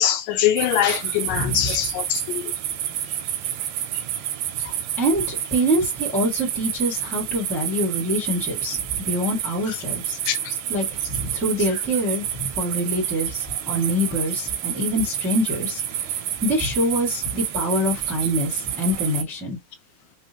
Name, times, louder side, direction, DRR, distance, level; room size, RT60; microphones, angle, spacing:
voice 1, 0.0-2.5 4.6-4.7 10.3-10.6, left 11 dB, 80° left, 2.2 m, -23 dB
sound 1, 0.6-19.2, right 11 dB, 80° right, 1.7 m, -29 dB
voice 2, 1.3-1.7 5.0-10.2 10.7-19.6, equal, ahead, 0.7 m, -25 dB
5.3 x 2.1 x 2.9 m
omnidirectional pair, 4.0 m